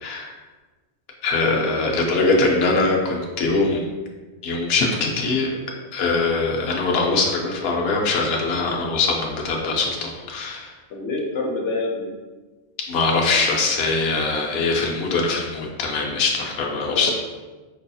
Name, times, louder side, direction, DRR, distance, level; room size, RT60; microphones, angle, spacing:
voice 1, 0.0-0.4 1.2-3.8 4.4-5.5 5.9-10.7 12.8-17.1, left 3 dB, 65° left, 0 dB, 0.8 m, -22 dB
voice 2, 1.5-1.9 10.9-12.1 16.6-17.1, left 3 dB, 90° left, 0 dB, 1.0 m, -28 dB
5.2 x 2.7 x 2.3 m, 1.3 s
omnidirectional pair, 1.2 m